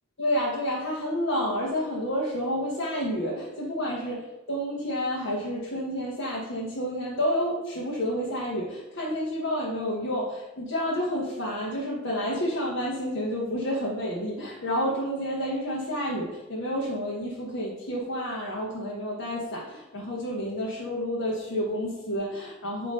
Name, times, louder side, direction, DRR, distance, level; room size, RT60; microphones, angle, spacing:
voice 1, 0.2-22.9, equal, 60° left, -4 dB, 1.1 m, -30 dB
8.5 x 3.0 x 5.2 m, 1.0 s
head